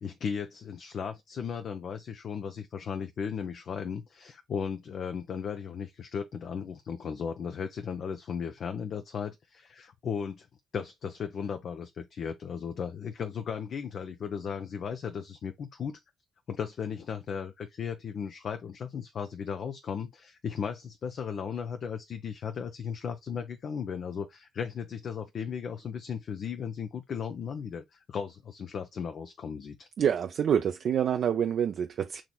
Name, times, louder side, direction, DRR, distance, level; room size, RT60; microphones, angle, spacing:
voice 1, 0.0-10.5 10.7-16.0 16.5-29.9, left 7 dB, 55° left, 0.5 m, -36 dB
voice 2, 30.0-32.2, right 8 dB, 60° right, 0.4 m, -27 dB
6.1 x 2.9 x 2.2 m
hypercardioid pair, 50°, 0 cm